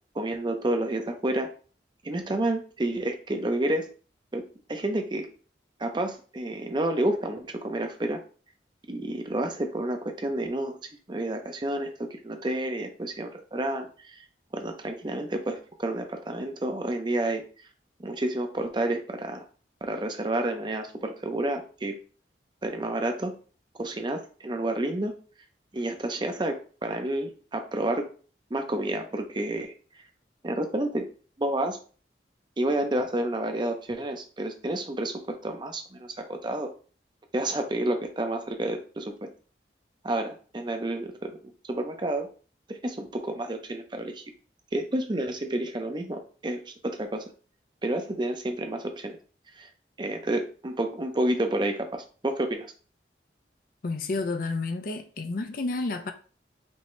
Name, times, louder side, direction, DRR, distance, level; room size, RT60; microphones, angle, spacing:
voice 1, 0.1-1.5 2.0-3.9 4.3-4.4 4.7-5.3 5.8-8.2 8.9-10.8 11.1-14.2 14.5-17.4 18.0-19.4 19.8-22.0 22.6-23.3 23.8-25.1 25.7-28.1 28.5-29.7 30.4-31.1 31.4-31.8 32.6-36.7 37.3-39.1 40.0-42.3 42.7-44.2 44.7-47.3 47.8-49.2 49.5-49.7 50.0-52.7, right 1 dB, 25° right, 0.6 m, -30 dB
voice 2, 53.8-56.1, left 3 dB, 50° left, 0.5 m, -30 dB
5.3 x 2.8 x 3.2 m
head